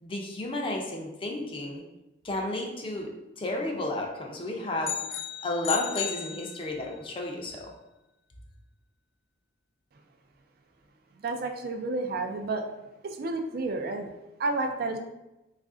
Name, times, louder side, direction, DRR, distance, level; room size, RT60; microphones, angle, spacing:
voice 1, 0.0-1.8 2.2-5.0 5.4-7.7, left 1 dB, 30° left, 0 dB, 0.5 m, -32 dB
sound 1, 4.8-7.0, left 10 dB, 85° left, 0.3 m, -35 dB
voice 2, 11.2-12.7 13.0-14.1 14.4-15.0, right 2 dB, 55° right, 5 dB, 0.4 m, -30 dB
3.1 x 2.5 x 3.6 m, 0.96 s
head